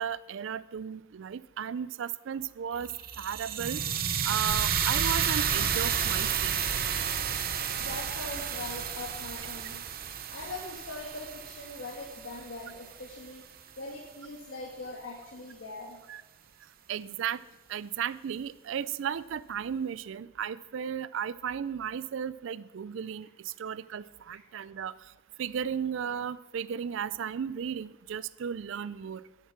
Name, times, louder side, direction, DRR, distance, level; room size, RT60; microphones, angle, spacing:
voice 1, 0.0-2.9 3.2-3.8 4.2-6.5 16.1-16.2 16.9-17.4 17.7-24.9 25.4-29.2, right 8 dB, 60° right, 18 dB, 0.4 m, -35 dB
sound 1, 2.8-12.9, right 7 dB, 45° right, 0.8 m, -31 dB
voice 2, 7.8-9.8 10.3-13.4 13.8-16.0, left 2 dB, 60° left, -2 dB, 1.5 m, -41 dB
12.0 x 7.4 x 5.9 m, 1.1 s
head